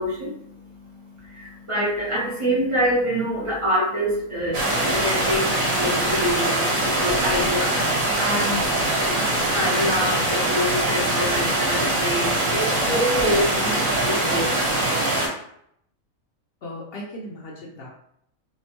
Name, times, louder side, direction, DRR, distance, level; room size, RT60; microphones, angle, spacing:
voice 1, 0.0-14.4, equal, 35° right, -6 dB, 0.6 m, -26 dB
sound 1, 4.5-15.3, right 1 dB, 70° right, 1.3 m, -23 dB
voice 2, 8.3-8.6 16.6-17.9, left 1 dB, 65° left, -3 dB, 0.6 m, -37 dB
2.8 x 2.1 x 2.9 m, 0.71 s
omnidirectional pair, 1.4 m